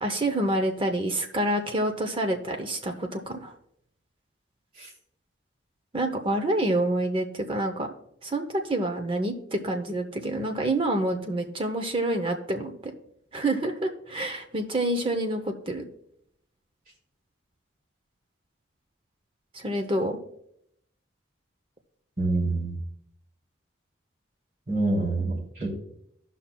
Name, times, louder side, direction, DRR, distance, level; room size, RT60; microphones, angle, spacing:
voice 1, 0.0-3.5 5.9-7.9 8.2-12.9 13.3-15.8 19.5-20.2, right 1 dB, 25° right, 5 dB, 0.7 m, -27 dB
voice 2, 22.2-22.8 24.7-25.7, right 2 dB, 50° right, -6 dB, 3.0 m, -26 dB
16.5 x 5.7 x 2.2 m, 0.74 s
head